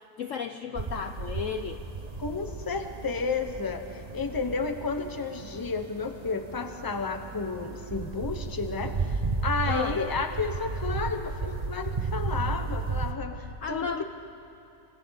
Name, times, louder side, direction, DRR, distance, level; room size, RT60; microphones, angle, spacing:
voice 1, 0.0-1.8 9.7-10.0 13.6-14.0, left 6 dB, 60° left, 7 dB, 0.9 m, -33 dB
sound 1, 0.7-13.1, right 4 dB, 30° right, 0.8 m, -34 dB
voice 2, 2.2-14.0, left 4 dB, 15° left, 6 dB, 0.9 m, -32 dB
28.5 x 25.5 x 4.1 m, 2.8 s
omnidirectional pair, 1.8 m